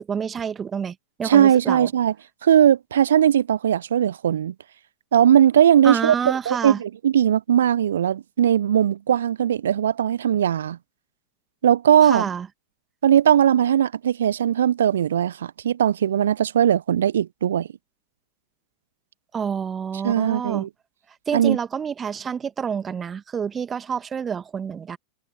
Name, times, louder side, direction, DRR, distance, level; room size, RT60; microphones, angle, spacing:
voice 1, 0.0-1.9 5.8-6.8 12.0-12.5 19.3-20.7 21.3-25.0, right 7 dB, 20° right, 2.1 m, -28 dB
voice 2, 1.2-2.1 2.4-4.5 5.1-10.8 11.6-12.2 13.0-17.7 20.0-20.7 21.3-21.6, right 9 dB, 65° right, 1.3 m, -19 dB
figure-of-eight pair, 90°, 0 cm